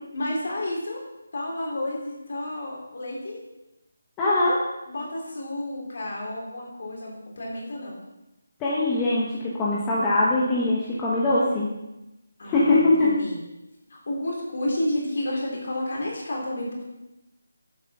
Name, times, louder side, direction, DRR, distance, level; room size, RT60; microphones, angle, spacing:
voice 1, 0.1-1.0 1.3-3.4 4.9-8.0 12.4-13.4 13.9-16.8, left 1 dB, 50° left, -3 dB, 3.4 m, -31 dB
voice 2, 4.2-4.6 8.6-11.7 12.4-13.2, left 2 dB, 10° left, -7 dB, 1.0 m, -22 dB
7.6 x 6.9 x 5.9 m, 0.95 s
figure-of-eight pair, 175°, 0 cm